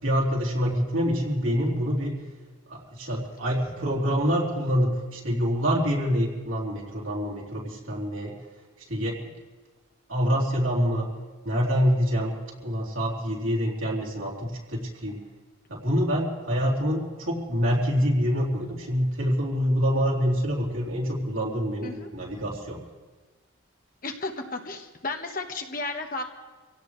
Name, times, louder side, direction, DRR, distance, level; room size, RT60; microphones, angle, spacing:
voice 1, 0.0-2.2 2.7-8.4 8.9-9.2 10.1-11.1 11.4-15.2 15.7-22.8, equal, 85° right, -4 dB, 3.8 m, -26 dB
voice 2, 24.0-26.2, left 3 dB, 40° left, 4 dB, 1.4 m, -33 dB
25.5 x 17.0 x 3.4 m, 1.3 s
head